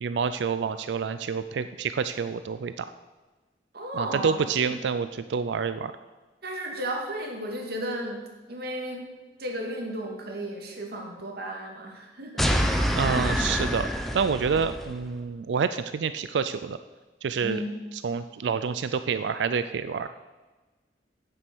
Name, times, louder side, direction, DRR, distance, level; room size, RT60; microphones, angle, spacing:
voice 1, 0.0-2.9 3.9-5.9 12.9-13.9 14.1-16.8 17.2-17.6 18.0-20.1, right 6 dB, 80° right, 12 dB, 0.4 m, -28 dB
voice 2, 3.7-4.4 6.4-8.2 8.5-9.1 9.4-12.7 13.1-13.5 14.6-14.7 17.4-17.8, right 1 dB, 65° right, 1 dB, 2.0 m, -34 dB
sound 1, 12.4-14.9, equal, ahead, 0.8 m, -26 dB
9.1 x 7.8 x 6.1 m, 1.2 s
head